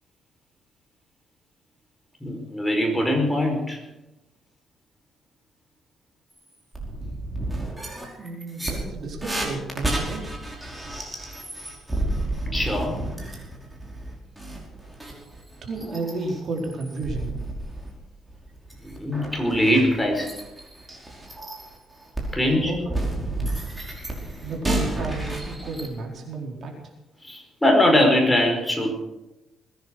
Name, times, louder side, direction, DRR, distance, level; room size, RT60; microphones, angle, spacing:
voice 1, 2.2-3.8 12.5-13.0 18.8-20.3 22.3-22.7 27.2-28.9, left 1 dB, 10° left, 2 dB, 4.9 m, -21 dB
sound 1, 6.4-6.5 6.7-17.9 18.3-25.9, right 2 dB, 10° right, 5.2 m, -31 dB
voice 2, 8.2-10.3 15.6-17.4 22.5-22.9 24.4-26.9, right 3 dB, 55° right, 0 dB, 4.4 m, -32 dB
21.0 x 10.5 x 6.4 m, 0.96 s
cardioid pair, 90°, 0 cm